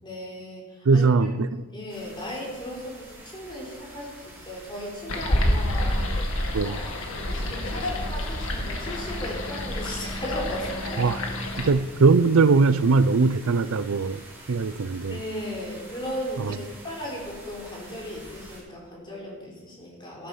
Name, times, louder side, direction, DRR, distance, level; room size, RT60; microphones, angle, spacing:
voice 1, 0.0-6.2 6.6-11.0 15.1-20.3, equal, 25° left, 4.7 m, -37 dB
voice 2, 0.9-1.6 6.5-6.8 11.0-11.2 11.6-14.2 14.5-15.2, right 4 dB, 85° right, 0.5 m, -20 dB
sound 1, 1.9-18.6, right 1 dB, 10° right, 5.6 m, -47 dB
sound 2, 5.1-11.7, left 1 dB, 80° left, 2.1 m, -28 dB
14.0 x 12.0 x 5.7 m
head